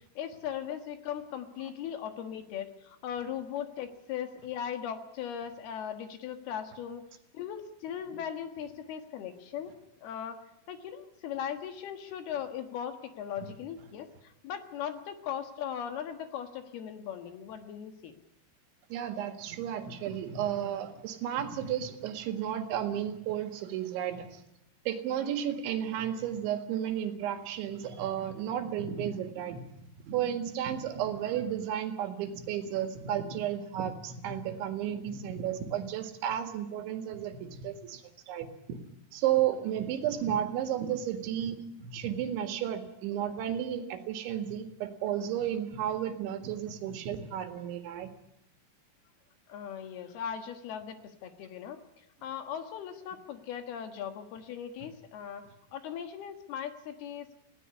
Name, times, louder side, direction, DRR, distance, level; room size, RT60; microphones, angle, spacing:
voice 1, 0.0-7.0 7.3-9.7 10.0-10.4 10.7-18.1 25.1-25.3 39.6-39.7 49.5-51.0 51.2-55.4 55.7-57.4, left 9 dB, 65° left, 7 dB, 3.2 m, -38 dB
voice 2, 18.9-24.4 24.9-29.6 30.1-38.0 38.3-38.8 39.1-48.1, right 10 dB, 85° right, 7 dB, 4.1 m, -33 dB
19.5 x 16.5 x 9.7 m, 0.85 s
omnidirectional pair, 5.2 m